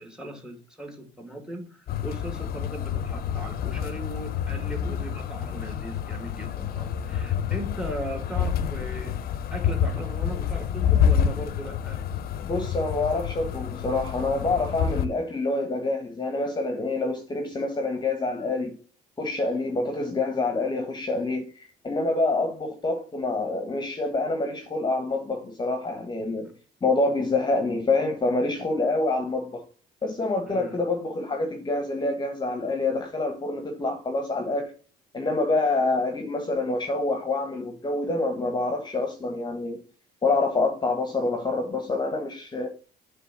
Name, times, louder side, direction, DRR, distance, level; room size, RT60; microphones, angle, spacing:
voice 1, 0.0-9.2 9.5-12.0 26.4-26.5 30.5-30.8, right 1 dB, 5° right, 2.1 m, -38 dB
sound 1, 1.9-15.1, left 8 dB, 65° left, 0.8 m, -28 dB
voice 2, 12.4-18.8 19.2-26.5 26.8-29.6 30.0-34.7 35.1-39.8 40.2-42.7, left 2 dB, 25° left, 1.3 m, -27 dB
8.0 x 3.5 x 6.0 m
cardioid pair, 110°, 17 cm